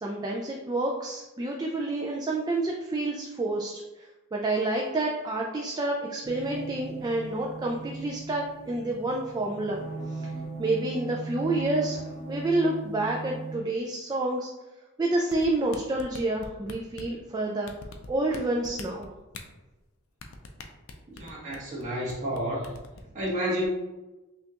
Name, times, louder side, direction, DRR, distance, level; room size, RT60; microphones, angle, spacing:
voice 1, 0.0-9.8 10.1-10.3 10.6-14.5 15.0-17.7 18.1-19.1, right 2 dB, 20° right, -1 dB, 0.3 m, -29 dB
sound 1, 6.2-13.6, right 3 dB, 35° left, 0.6 m, -38 dB
sound 2, 15.3-17.2 17.7-18.4 18.6-19.4 20.2-21.8 22.1-22.4 22.6-23.0, left 4 dB, 75° left, 0.5 m, -42 dB
voice 2, 21.1-22.7 23.1-23.6, equal, 35° right, -6 dB, 1.4 m, -30 dB
5.6 x 2.4 x 2.8 m, 1.1 s
head